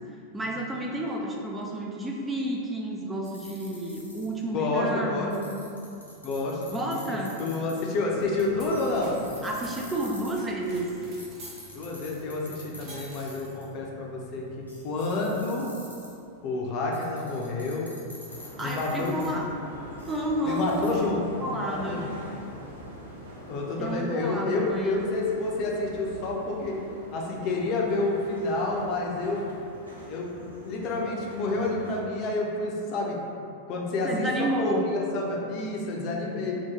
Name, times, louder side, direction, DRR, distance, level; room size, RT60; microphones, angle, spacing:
voice 1, 0.1-5.5 6.7-7.4 9.4-10.9 18.6-19.5 20.1-21.1 21.4-22.0 23.8-25.0 34.0-34.9, right 1 dB, 15° right, -2 dB, 0.3 m, -31 dB
sound 1, 3.2-4.5 5.3-8.1 8.7-10.3 11.2-13.6 14.1-14.2 14.7-16.3 16.9-19.4 20.0-20.9, left 1 dB, 80° left, 0.8 m, -46 dB
voice 2, 4.5-5.3 6.2-9.1 11.7-15.7 16.4-17.9 18.6-19.4 20.4-21.2 21.5-22.2 23.5-26.8 27.1-29.4 30.1-30.3 30.6-33.2 33.7-36.6, left 2 dB, 40° left, -2 dB, 0.5 m, -29 dB
sound 2, 8.0-15.4, equal, 40° right, 1.0 m, -47 dB
sound 3, 18.2-32.0, equal, 75° right, 0.6 m, -44 dB
2.8 x 2.6 x 3.6 m, 2.6 s
figure-of-eight pair, 90°, 0 cm